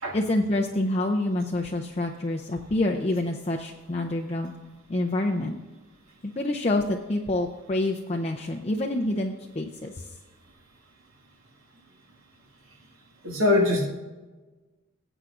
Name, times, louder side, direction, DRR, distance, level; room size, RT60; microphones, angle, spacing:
voice 1, 0.1-4.5 4.9-5.6 6.2-10.1, left 1 dB, 30° left, 1 dB, 0.5 m, -27 dB
voice 2, 13.2-13.9, left 2 dB, 65° right, -1 dB, 1.8 m, -22 dB
19.0 x 8.0 x 2.5 m, 1.2 s
head